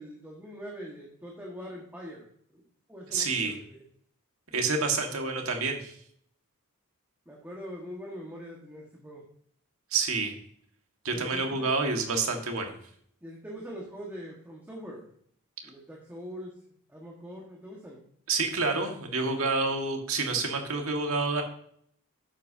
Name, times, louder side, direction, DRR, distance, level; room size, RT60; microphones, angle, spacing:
voice 1, 0.0-2.3 2.5-3.8 7.2-9.2 11.1-11.7 13.2-15.1 15.6-16.5 16.9-18.0, equal, 10° right, -3 dB, 1.6 m, -43 dB
voice 2, 3.1-3.5 4.5-5.9 9.9-10.3 11.0-12.7 18.3-21.4, right 3 dB, 70° right, 3 dB, 1.8 m, -28 dB
10.5 x 8.2 x 2.8 m, 0.64 s
head